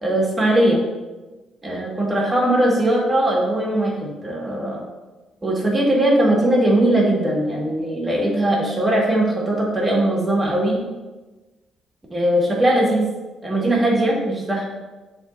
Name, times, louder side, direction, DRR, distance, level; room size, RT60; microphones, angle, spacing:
voice 1, 0.0-0.8 1.6-4.8 5.4-10.8 12.1-13.1 13.4-14.7, right 1 dB, 25° right, -3 dB, 1.9 m, -20 dB
10.5 x 3.8 x 2.7 m, 1.2 s
cardioid pair, 90°, 0 cm